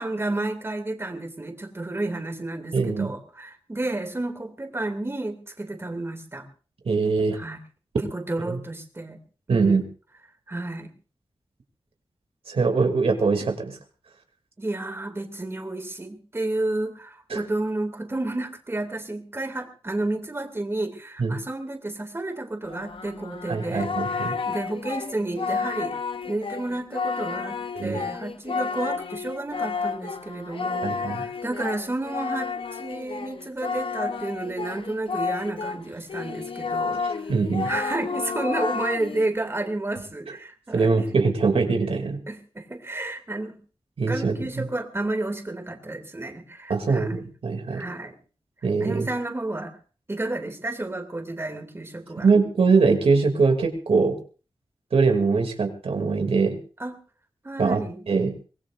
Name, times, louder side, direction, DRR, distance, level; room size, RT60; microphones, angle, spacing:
voice 1, 0.0-6.4 7.3-7.6 8.0-9.2 9.5-9.7 10.5-10.9 14.6-25.9 26.3-27.6 27.8-32.5 32.8-37.3 37.6-41.0 42.3-43.6 44.1-47.1 47.7-48.1 48.8-49.8 50.1-52.3 56.8-57.0 57.4-58.0, right 2 dB, 25° right, 5 dB, 2.6 m, -31 dB
voice 2, 2.7-3.1 6.8-7.4 8.5-8.6 9.5-9.8 12.5-13.8 17.3-17.4 21.2-21.4 23.5-24.3 27.7-28.0 30.8-31.2 37.0-37.7 40.7-42.2 44.0-44.7 46.7-47.8 48.6-49.1 52.2-54.2 54.9-56.6 57.6-58.3, right 4 dB, 85° right, 4 dB, 2.8 m, -22 dB
Singing, 22.7-35.8 36.1-39.3, left 5 dB, 65° left, 0.9 m, -31 dB
24.5 x 19.0 x 2.6 m, 0.38 s
wide cardioid pair, 90°, 10 cm